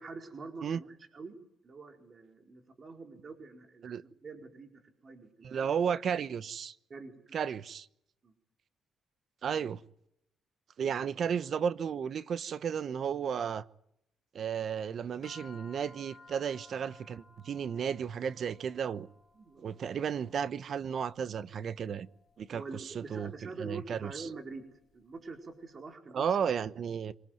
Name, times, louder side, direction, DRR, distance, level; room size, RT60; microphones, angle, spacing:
voice 1, 0.0-1.4 1.6-4.7 5.0-5.7 6.9-7.4 8.2-8.3 19.3-19.8 22.5-24.6 24.9-26.5, right 4 dB, 40° right, 4.6 m, -46 dB
voice 2, 5.4-6.7 7.3-7.9 9.4-9.8 10.8-13.6 14.3-19.1 19.6-22.1 22.4-24.3 26.1-27.1, right 7 dB, 55° right, 1.0 m, -33 dB
sound 1, 15.2-25.7, left 3 dB, 50° left, 4.5 m, -59 dB
26.0 x 19.0 x 9.4 m
cardioid pair, 90°, 0 cm